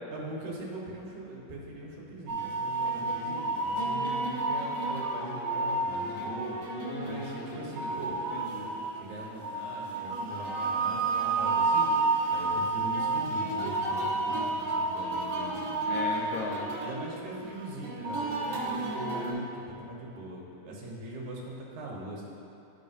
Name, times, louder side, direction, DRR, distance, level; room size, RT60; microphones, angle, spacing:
voice 1, 0.1-6.6 7.0-8.2 8.9-16.3 16.8-22.2, right 1 dB, 75° right, -4 dB, 2.6 m, -42 dB
sound 1, 2.3-19.3, right 3 dB, 45° right, 1.6 m, -31 dB
voice 2, 6.7-7.8 8.3-8.7 15.9-16.7, left 3 dB, 75° left, -2 dB, 2.1 m, -38 dB
13.5 x 5.4 x 2.6 m, 2.7 s
omnidirectional pair, 3.6 m